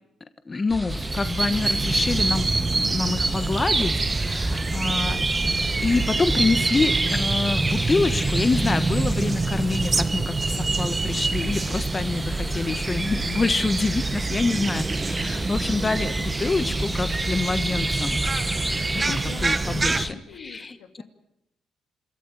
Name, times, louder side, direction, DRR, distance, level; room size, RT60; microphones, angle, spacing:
voice 1, 0.4-5.2 5.8-18.2 19.4-20.8, left 3 dB, 30° left, 11 dB, 1.3 m, -26 dB
sound 1, 0.7-20.1, equal, ahead, 1.9 m, -33 dB
sound 2, 0.9-20.1, right 3 dB, 25° right, 1.1 m, -26 dB
voice 2, 18.9-21.0, left 8 dB, 85° left, 6 dB, 2.6 m, -41 dB
27.0 x 14.0 x 9.9 m, 0.85 s
cardioid pair, 90°, 0 cm